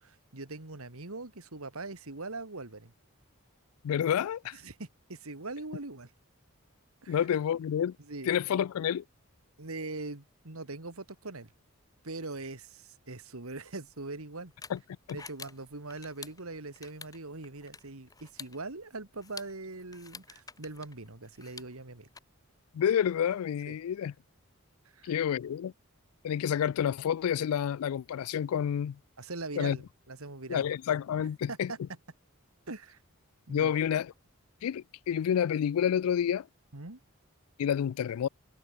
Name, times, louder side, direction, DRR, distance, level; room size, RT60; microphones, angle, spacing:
voice 1, 0.0-2.9 4.5-6.1 7.0-7.2 8.0-8.3 9.6-11.5 12.0-14.5 15.1-22.1 23.7-23.8 24.9-25.1 29.2-30.7 31.5-31.8 32.7-33.0 33.5-33.8 36.7-37.0, right 3 dB, 80° right, 2.2 m, -41 dB
voice 2, 3.8-4.5 7.1-8.0 8.3-9.0 14.7-14.8 22.7-24.1 25.0-25.7 26.2-29.0 29.6-29.8 30.5-31.7 33.5-34.1 34.6-36.5 37.6-38.3, left 9 dB, 80° left, 0.3 m, -29 dB
sound 1, 13.5-22.2, left 5 dB, 15° left, 2.0 m, -50 dB
head